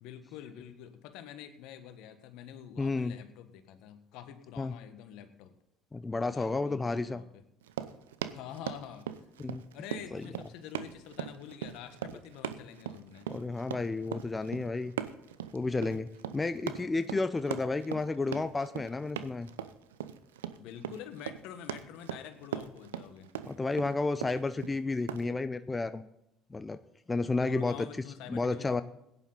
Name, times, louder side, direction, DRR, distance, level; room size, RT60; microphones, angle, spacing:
voice 1, 0.0-5.5 6.3-7.4 8.3-9.1 9.7-13.3 20.5-23.3 27.3-28.8, left 9 dB, 70° left, 9 dB, 1.4 m, -47 dB
voice 2, 2.8-3.1 4.6-4.8 5.9-7.2 9.4-9.6 10.1-10.2 13.3-14.9 15.5-19.5 23.5-26.1 26.5-26.8 27.1-27.9 28.3-28.8, left 3 dB, 20° left, 12 dB, 0.6 m, -31 dB
Run, 7.6-25.3, right 10 dB, 85° right, 0.7 m, -40 dB
16.5 x 10.0 x 4.0 m, 0.83 s
hypercardioid pair, 65°, 0 cm